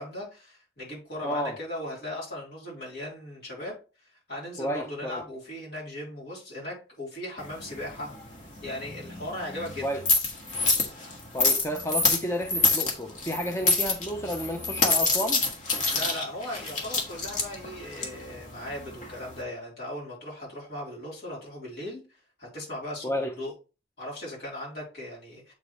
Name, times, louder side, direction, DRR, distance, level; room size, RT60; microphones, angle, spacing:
voice 1, 0.0-3.8 4.3-8.1 8.6-9.9 15.9-22.0 22.4-23.1 23.4-23.5 24.0-25.5, left 1 dB, 60° left, 3.6 m, -37 dB
voice 2, 1.2-1.6 4.6-5.2 9.8-10.0 11.3-15.4 23.0-23.3, equal, 15° left, 0.5 m, -31 dB
sound 1, 7.4-19.4, left 3 dB, 45° left, 1.5 m, -28 dB
7.8 x 5.0 x 3.1 m
head